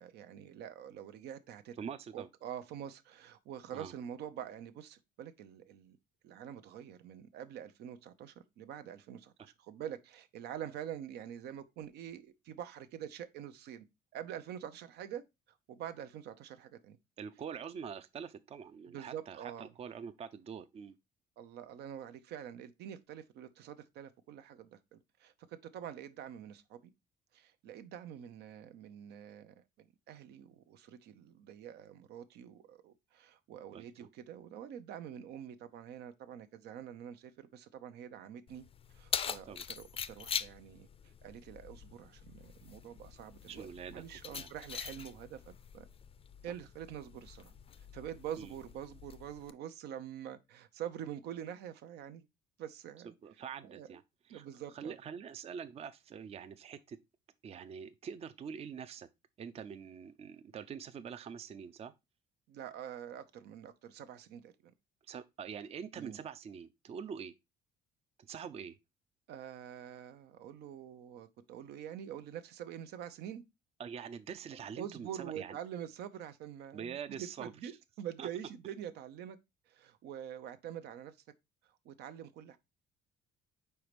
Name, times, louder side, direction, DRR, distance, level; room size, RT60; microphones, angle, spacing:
voice 1, 0.0-1.7 2.1-6.0 6.2-13.8 14.1-15.2 15.7-17.0 18.9-19.7 21.4-26.9 27.3-38.6 38.9-45.9 46.4-47.5 47.9-52.3 52.6-53.1 53.6-54.0 54.3-55.0 62.5-64.7 66.0-66.2 69.3-73.4 74.8-79.4 79.7-81.2 81.8-82.6, right 10 dB, 75° right, 0.8 m, -46 dB
voice 2, 1.8-2.3 3.7-3.9 17.2-21.0 33.7-34.1 39.5-39.6 43.5-44.0 44.3-44.5 48.4-48.6 53.2-54.0 54.3-54.5 54.7-57.0 57.4-59.1 59.4-61.9 65.1-67.3 68.2-68.8 73.8-75.1 75.3-75.6 76.7-77.5 78.2-78.3, right 7 dB, 35° right, 0.5 m, -45 dB
Keys jangling, 38.5-49.5, left 7 dB, 35° left, 0.5 m, -44 dB
4.7 x 4.2 x 5.0 m
cardioid pair, 110°, 17 cm